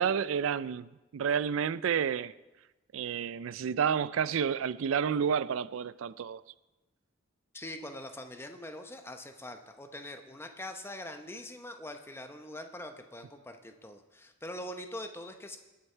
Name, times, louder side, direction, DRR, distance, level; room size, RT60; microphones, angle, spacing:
voice 1, 0.0-2.3 2.9-6.4, right 7 dB, 75° right, 0.4 m, -30 dB
voice 2, 7.5-15.6, left 1 dB, 10° left, 0.8 m, -43 dB
20.0 x 6.8 x 4.5 m
head